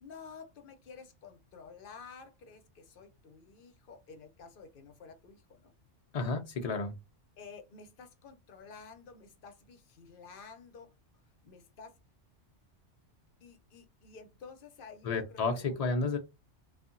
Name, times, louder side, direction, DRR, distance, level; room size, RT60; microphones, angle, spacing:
voice 1, 0.0-5.7 7.4-10.9 11.4-11.9 13.4-15.9, left 5 dB, 55° left, 0.7 m, -51 dB
voice 2, 6.1-6.9 15.0-16.2, left 3 dB, 85° left, 0.3 m, -31 dB
2.7 x 2.4 x 2.5 m
omnidirectional pair, 1.2 m